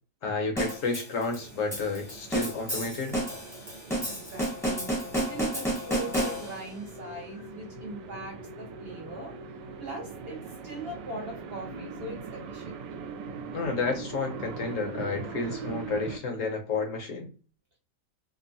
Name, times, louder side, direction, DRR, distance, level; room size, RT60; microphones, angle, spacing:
voice 1, 0.2-3.2 13.5-17.3, left 4 dB, 55° left, 2 dB, 1.0 m, -31 dB
sound 1, 0.6-6.8, right 1 dB, ahead, 0.7 m, -31 dB
sound 2, 1.2-16.2, right 4 dB, 80° right, 1.2 m, -41 dB
voice 2, 4.0-9.4 9.8-12.8, right 2 dB, 55° right, -1 dB, 0.6 m, -40 dB
2.9 x 2.1 x 2.6 m, 0.36 s
omnidirectional pair, 1.9 m